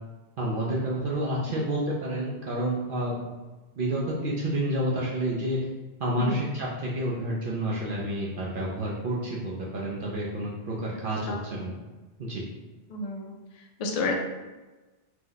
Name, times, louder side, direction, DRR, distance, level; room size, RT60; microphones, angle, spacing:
voice 1, 0.4-3.1 3.8-5.6 6.0-11.7 12.2-12.4, right 1 dB, 60° right, -5 dB, 0.7 m, -29 dB
voice 2, 6.1-6.5 11.3-11.4 12.9-13.3 13.8-14.2, left 2 dB, 60° left, 1 dB, 0.4 m, -30 dB
2.9 x 2.0 x 3.8 m, 1.2 s
omnidirectional pair, 1.1 m